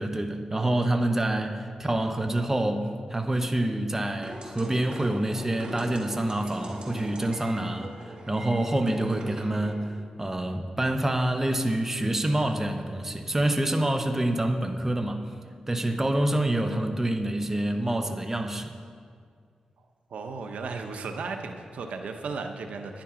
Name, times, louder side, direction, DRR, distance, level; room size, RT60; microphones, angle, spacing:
voice 1, 0.0-15.2 15.7-18.7, right 1 dB, 20° right, 5 dB, 0.8 m, -27 dB
sound 1, 4.2-9.7, right 1 dB, 50° right, 2.6 m, -41 dB
voice 2, 20.1-23.0, right 4 dB, 90° right, 5 dB, 0.9 m, -35 dB
10.5 x 10.5 x 5.1 m, 2.1 s
wide cardioid pair, 95°, 2 cm